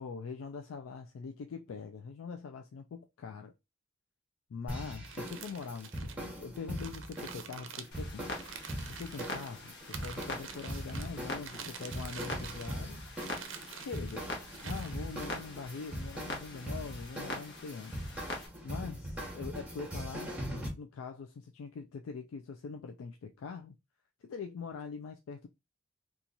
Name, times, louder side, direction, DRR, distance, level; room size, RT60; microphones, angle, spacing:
voice 1, 0.0-3.5 4.5-8.3 8.9-13.0 13.7-14.3 14.6-18.0 18.6-20.3 20.8-23.7 24.2-25.5, left 5 dB, 75° left, 0.3 m, -43 dB
sound 1, 4.7-20.7, equal, 5° right, 0.9 m, -41 dB
sound 2, 5.0-9.5 9.9-11.1 11.4-12.9 13.1-14.1 14.5-15.3, right 7 dB, 65° right, 0.5 m, -47 dB
Clock, 7.9-18.5, left 2 dB, 55° left, 1.0 m, -44 dB
2.9 x 2.4 x 3.9 m
head